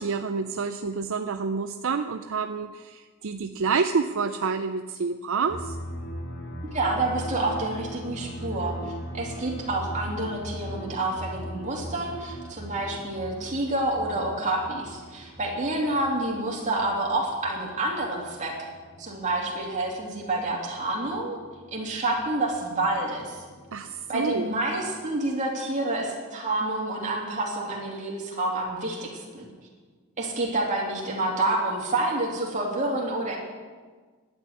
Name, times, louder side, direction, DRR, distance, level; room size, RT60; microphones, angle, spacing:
voice 1, 0.0-5.8 23.7-24.5, right 5 dB, 60° right, 8 dB, 0.5 m, -28 dB
sound 1, 5.5-25.2, equal, 55° left, 4.2 m, -40 dB
voice 2, 6.6-18.5 19.0-21.4 21.7-23.4 24.1-29.5 30.2-33.4, right 2 dB, 35° right, -2 dB, 3.0 m, -28 dB
12.0 x 8.3 x 9.7 m, 1.5 s
head